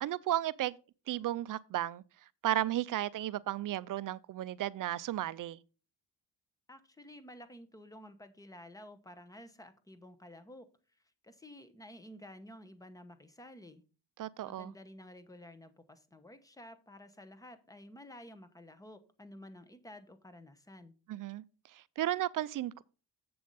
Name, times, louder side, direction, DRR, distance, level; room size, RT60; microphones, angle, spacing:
voice 1, 0.0-0.8 1.1-2.0 2.4-5.6 14.2-14.7 21.1-21.4 21.7-22.8, right 13 dB, 50° right, 0.5 m, -34 dB
voice 2, 6.7-10.7 10.9-13.8 14.4-20.9, left 1 dB, 10° left, 0.9 m, -52 dB
7.7 x 7.0 x 4.0 m
cardioid pair, 130°, 42 cm